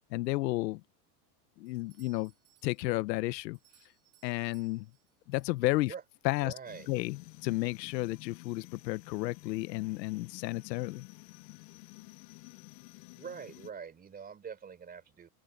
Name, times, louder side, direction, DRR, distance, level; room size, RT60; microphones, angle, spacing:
voice 1, 0.1-0.8 1.6-2.3 2.6-3.6 4.2-4.9 5.3-5.9 6.2-6.5 6.9-11.1, left 19 dB, 90° left, 0.9 m, -32 dB
Doorbell, 1.7-6.1, right 16 dB, 40° right, 5.3 m, -68 dB
voice 2, 6.4-6.9 13.1-15.3, right 6 dB, 20° right, 3.8 m, -44 dB
sound 1, 6.6-13.7, left 25 dB, 60° left, 0.9 m, -52 dB
supercardioid pair, 160°, 48 cm